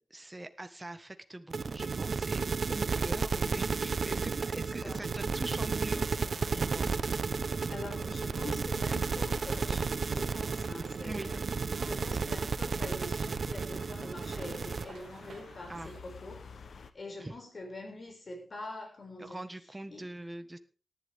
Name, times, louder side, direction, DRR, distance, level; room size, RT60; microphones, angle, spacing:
voice 1, 0.1-7.0 11.0-11.3 15.7-15.9 17.2-17.3 19.2-20.6, right 1 dB, 20° right, 1.5 m, -43 dB
sound 1, 1.5-14.8, right 5 dB, 70° right, 0.9 m, -33 dB
voice 2, 4.6-5.2 7.7-11.4 11.8-19.4 19.9-20.2, left 2 dB, 55° left, 6.5 m, -45 dB
sound 2, 4.8-16.9, left 5 dB, 80° left, 1.0 m, -52 dB
sound 3, 6.0-16.0, right 5 dB, 85° right, 1.5 m, -51 dB
18.5 x 11.5 x 3.7 m
cardioid pair, 70°, 0 cm